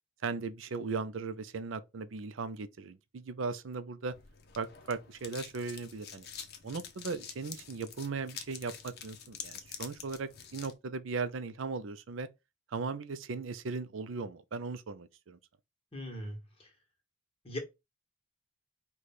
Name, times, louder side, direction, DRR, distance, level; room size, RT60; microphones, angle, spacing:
voice 1, 0.2-4.1 4.6-6.3 6.6-12.3 12.7-15.4, right 4 dB, 65° right, 0.5 m, -38 dB
sound 1, 4.1-10.7, left 7 dB, 50° left, 0.7 m, -47 dB
voice 2, 15.9-16.7 17.4-17.6, left 1 dB, 25° left, 1.3 m, -40 dB
4.9 x 2.3 x 4.1 m
head